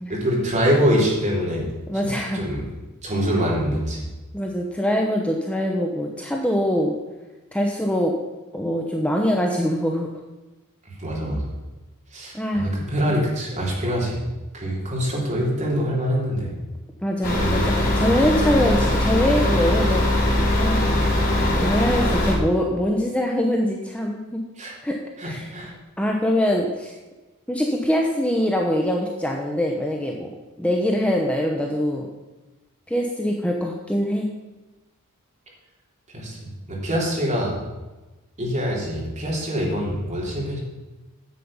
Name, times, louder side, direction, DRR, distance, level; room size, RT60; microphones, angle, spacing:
voice 1, 0.1-1.6 2.0-2.6 3.0-4.0 11.0-11.5 12.1-14.2 14.5-16.5 17.4-17.9 24.6-24.7 25.2-25.7 36.1-37.6 38.4-40.6, equal, 35° right, -4 dB, 3.0 m, -24 dB
voice 2, 1.9-2.4 4.3-6.9 7.5-8.1 8.5-10.1 12.3-12.7 13.1-13.2 17.0-20.0 20.5-21.0 21.6-24.4 24.8-25.0 25.2-25.5 26.0-26.9 27.5-30.3 30.6-32.1 32.9-34.3, equal, 5° left, 0 dB, 0.8 m, -23 dB
sound 1, 17.2-22.3, left 1 dB, 40° left, 2.5 m, -21 dB
9.5 x 7.5 x 5.5 m, 1.1 s
head